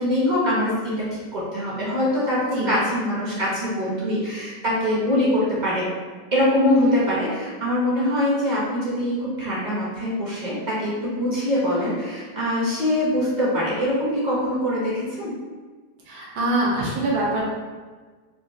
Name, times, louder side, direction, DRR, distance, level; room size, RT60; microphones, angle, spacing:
voice 1, 0.0-5.9 6.3-15.3, left 1 dB, 40° right, -8 dB, 0.6 m, -23 dB
voice 2, 16.1-17.4, right 1 dB, 75° right, -4 dB, 1.4 m, -24 dB
3.6 x 2.4 x 2.7 m, 1.4 s
omnidirectional pair, 1.8 m